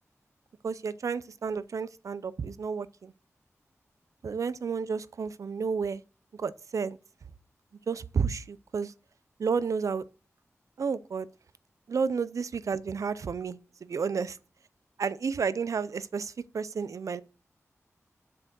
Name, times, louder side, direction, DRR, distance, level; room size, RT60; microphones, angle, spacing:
voice 1, 0.6-3.1 4.2-6.0 6.3-7.0 7.9-8.9 9.4-10.0 10.8-11.3 11.9-14.3 15.0-17.2, right 5 dB, 80° right, 0.6 m, -31 dB
7.2 x 6.9 x 6.1 m
wide cardioid pair, 90°, 5 cm